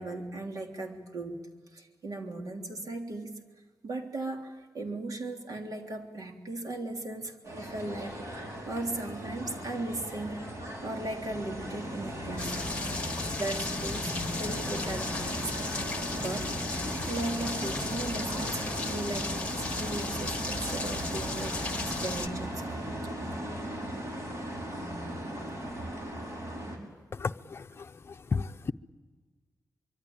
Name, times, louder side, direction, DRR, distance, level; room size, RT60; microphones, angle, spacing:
voice 1, 0.0-1.4 1.7-3.4 3.8-8.2 8.7-10.5 10.8-12.6 13.4-15.8 16.1-22.7, right 2 dB, 65° right, 3 dB, 3.4 m, -37 dB
sound 1, 7.4-26.8, right 1 dB, 50° right, 5.6 m, -37 dB
sound 2, 12.4-22.3, left 3 dB, 20° left, 1.5 m, -35 dB
voice 2, 27.1-27.9 28.3-28.7, left 4 dB, 40° left, 9 dB, 0.7 m, -32 dB
25.0 x 24.0 x 8.8 m, 1.5 s
wide cardioid pair, 145°, 7 cm